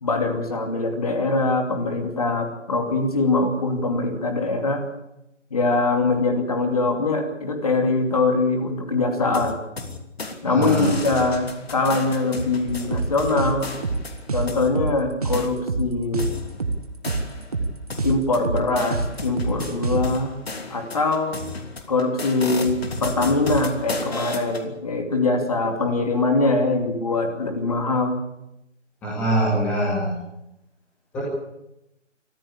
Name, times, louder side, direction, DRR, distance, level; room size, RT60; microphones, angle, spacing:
voice 1, 0.0-4.8 5.5-9.6 10.4-13.7 14.3-16.3 18.0-20.3 20.7-21.4 21.9-28.2, left 3 dB, 30° left, 4 dB, 2.6 m, -23 dB
sound 1, 9.3-10.4 10.6-14.7 15.3-15.5 16.2-17.6 17.9-24.7, left 3 dB, 55° left, 3.0 m, -33 dB
voice 2, 10.4-10.9 29.0-30.2 31.1-31.2, right 1 dB, 5° left, -6 dB, 2.3 m, -23 dB
sound 2, 12.7-20.1, right 3 dB, 30° right, 1.5 m, -26 dB
25.0 x 14.5 x 8.5 m, 0.86 s
figure-of-eight pair, 170°, 37 cm